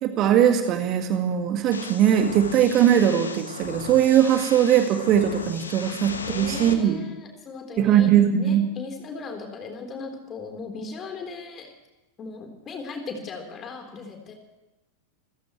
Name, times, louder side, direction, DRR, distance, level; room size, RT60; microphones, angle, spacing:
voice 1, 0.0-7.0 7.8-8.7, right 10 dB, 35° right, 6 dB, 1.9 m, -20 dB
sound 1, 1.7-6.7, left 4 dB, 70° left, 1.6 m, -36 dB
voice 2, 5.9-8.1 8.4-11.7 12.2-14.3, left 4 dB, 25° left, 3 dB, 4.0 m, -38 dB
28.5 x 15.5 x 3.2 m, 1.1 s
figure-of-eight pair, 90°, 0 cm